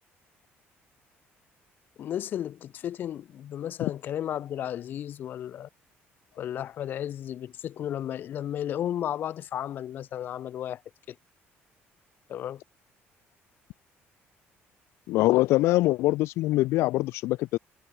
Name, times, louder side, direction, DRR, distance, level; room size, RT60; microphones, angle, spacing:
voice 1, 2.0-5.7 6.4-10.8 11.1-11.2 12.3-12.6, left 10 dB, 45° left, 3.4 m, -33 dB
voice 2, 15.1-17.6, left 18 dB, 80° left, 0.5 m, -23 dB
cardioid pair, 175°, 5 cm